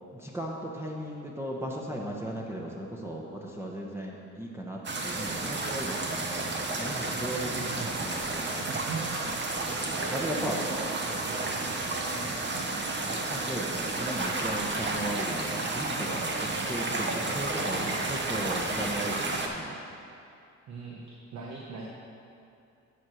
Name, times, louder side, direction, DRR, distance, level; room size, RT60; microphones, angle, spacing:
voice 1, 0.0-6.5 6.8-8.7 9.5-9.8 10.1-10.6 13.1-19.8, right 1 dB, 10° right, -3 dB, 0.9 m, -37 dB
sound 1, 4.8-19.5, right 2 dB, 35° right, 1.0 m, -31 dB
voice 2, 7.5-8.0 8.7-9.2 9.9-12.7 17.7-18.0 20.7-21.9, right 3 dB, 70° right, -2 dB, 1.0 m, -40 dB
9.4 x 4.5 x 6.3 m, 2.6 s
cardioid pair, 90°, 30 cm